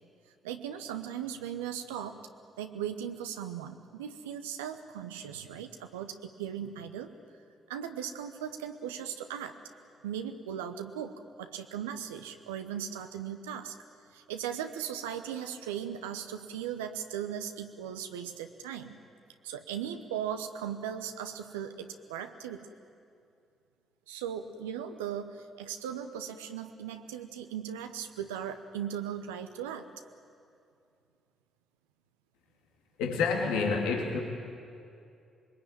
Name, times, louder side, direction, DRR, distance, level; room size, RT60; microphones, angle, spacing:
voice 1, 0.4-2.2 2.6-7.1 7.7-9.6 10.0-13.8 14.1-19.0 19.4-22.7 24.1-29.9, right 9 dB, 80° right, 7 dB, 0.9 m, -38 dB
voice 2, 33.0-34.2, left 4 dB, 70° left, 2 dB, 2.6 m, -28 dB
26.5 x 22.0 x 9.1 m, 2.5 s
figure-of-eight pair, 40°, 0 cm